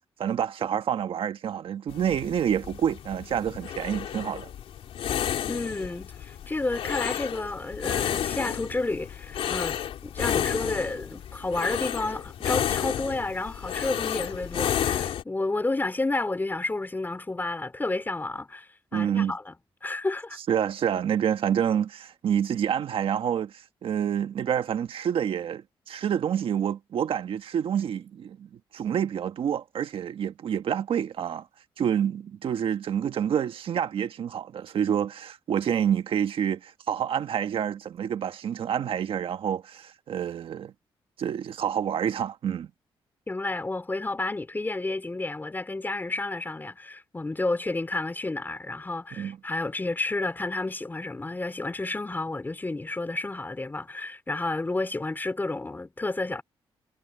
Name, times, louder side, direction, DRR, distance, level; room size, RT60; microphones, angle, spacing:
voice 1, 0.2-4.5 18.9-19.4 20.5-31.5 31.8-40.7 41.2-42.7 49.2-49.4, right 9 dB, 70° right, 1.6 m, -28 dB
sound 1, 1.9-15.2, left 10 dB, 80° left, 2.8 m, -31 dB
voice 2, 5.5-9.8 10.0-19.5 19.8-20.4 43.3-56.4, left 2 dB, 20° left, 3.7 m, -31 dB
cardioid pair, 95°, 10 cm